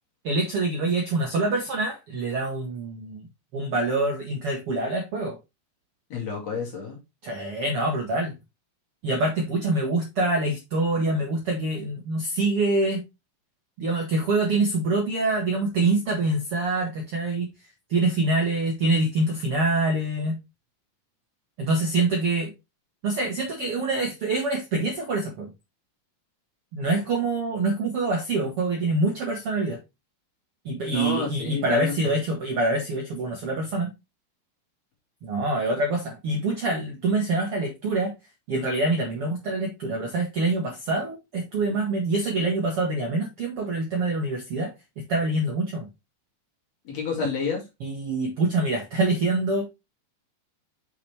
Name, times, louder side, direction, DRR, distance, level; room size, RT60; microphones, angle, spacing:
voice 1, 0.2-3.3 3.5-5.4 7.2-8.3 9.0-13.0 13.8-17.5 17.9-20.3 21.6-22.5 23.0-25.5 26.7-29.8 30.6-33.9 35.2-38.1 38.5-45.9 47.8-49.7, right 2 dB, 60° right, 1.6 m, -25 dB
voice 2, 6.1-7.0 30.9-32.0 46.8-47.6, left 5 dB, 50° left, 3.1 m, -29 dB
6.7 x 5.8 x 3.4 m
omnidirectional pair, 4.3 m